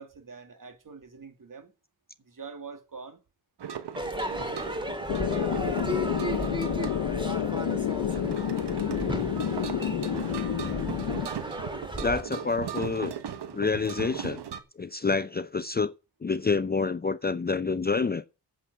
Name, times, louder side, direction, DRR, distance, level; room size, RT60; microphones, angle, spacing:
voice 1, 0.0-1.7 2.2-3.2, right 5 dB, 50° right, 2.5 m, -44 dB
sound 1, 3.6-14.6, right 8 dB, 75° right, 1.4 m, -38 dB
Crowd / Fireworks, 4.0-12.2, equal, 10° right, 2.5 m, -35 dB
sound 2, 5.1-11.3, left 9 dB, 75° left, 1.2 m, -29 dB
voice 2, 12.0-13.1 13.5-14.4 14.8-15.9 16.2-18.2, left 4 dB, 25° left, 0.5 m, -28 dB
8.3 x 7.5 x 8.3 m
cardioid pair, 50°, 41 cm